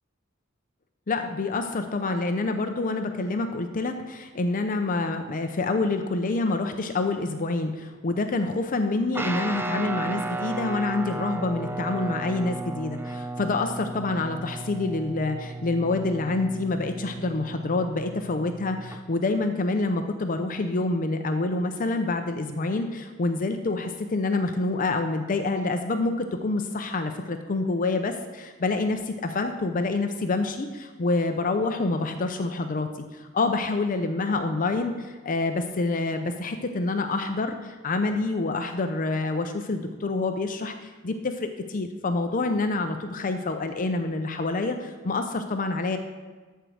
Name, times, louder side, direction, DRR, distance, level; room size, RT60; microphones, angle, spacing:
voice 1, 1.1-46.0, left 3 dB, 40° left, 6 dB, 0.6 m, -27 dB
Guitar, 9.1-19.0, right 2 dB, 10° right, 0.5 m, -34 dB
13.0 x 4.6 x 6.3 m, 1.3 s
head